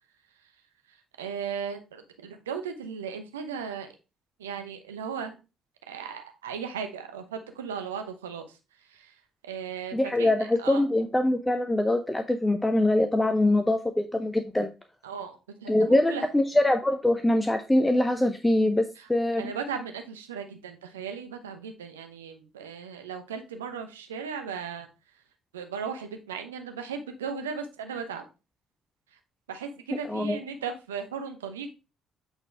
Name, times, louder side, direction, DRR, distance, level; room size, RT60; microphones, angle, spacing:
voice 1, 0.9-3.9 4.4-5.3 5.9-8.6 8.9-9.1 9.4-10.8 15.0-16.3 19.0-19.1 19.4-24.9 25.5-28.3 29.5-31.7, right 6 dB, 80° right, 6 dB, 0.8 m, -36 dB
voice 2, 9.9-14.7 15.7-19.5 30.1-30.4, left 1 dB, 10° left, 8 dB, 0.7 m, -23 dB
8.1 x 4.1 x 3.4 m, 0.29 s
figure-of-eight pair, 45°, 0 cm